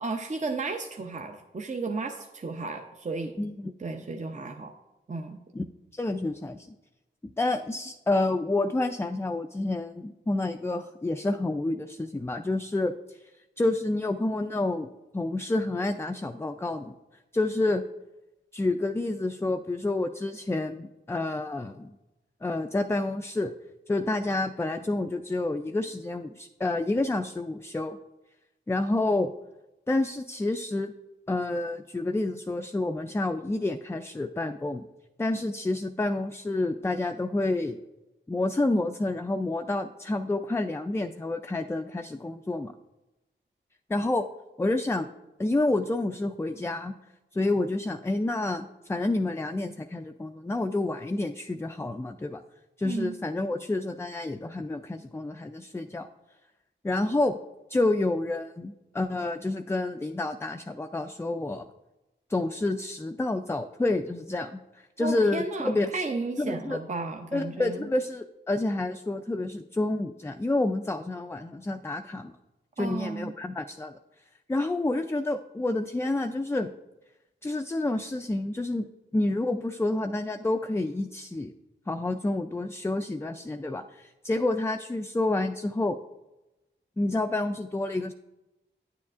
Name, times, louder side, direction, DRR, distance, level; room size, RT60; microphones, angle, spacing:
voice 1, 0.0-3.4 3.8-4.7 5.1-5.4 52.8-53.2 65.0-67.9 72.8-73.3, right 3 dB, 35° right, 4 dB, 0.6 m, -33 dB
voice 2, 3.4-3.7 5.5-5.6 5.9-6.7 7.2-13.3 13.6-14.9 15.1-16.9 17.3-17.8 18.5-21.9 22.4-23.5 23.9-28.0 28.7-29.3 29.9-30.9 31.3-34.8 35.2-37.8 38.3-42.7 43.9-44.3 44.6-45.1 45.4-46.9 47.3-52.4 52.8-56.1 56.8-57.4 57.7-61.6 62.3-66.0 66.4-66.8 67.3-72.3 72.8-74.0 74.5-76.7 77.4-78.9 79.1-81.5 81.9-86.0 87.0-88.1, left 2 dB, 15° left, 6 dB, 0.3 m, -29 dB
9.6 x 7.1 x 2.4 m, 1.0 s
cardioid pair, 45°, 20 cm